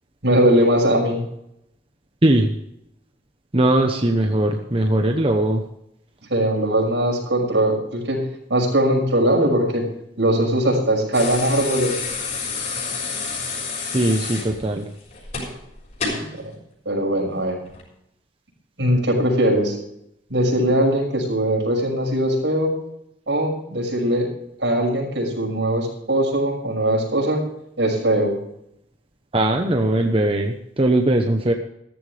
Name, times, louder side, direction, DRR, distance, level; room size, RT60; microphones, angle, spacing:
voice 1, 0.2-1.2 6.3-8.2 8.5-9.9 10.2-12.0 16.0-16.2 16.8-17.6 18.8-19.8 20.3-22.7 23.3-24.3 24.6-27.4 27.8-28.4, right 1 dB, 75° right, 0 dB, 6.1 m, -20 dB
voice 2, 3.5-5.6 13.9-14.8 29.3-31.5, right 1 dB, 30° right, 4 dB, 1.0 m, -19 dB
sound 1, 11.1-16.3 17.7-17.8, left 4 dB, 40° left, 6.5 m, -29 dB
15.0 x 14.0 x 3.4 m, 0.78 s
head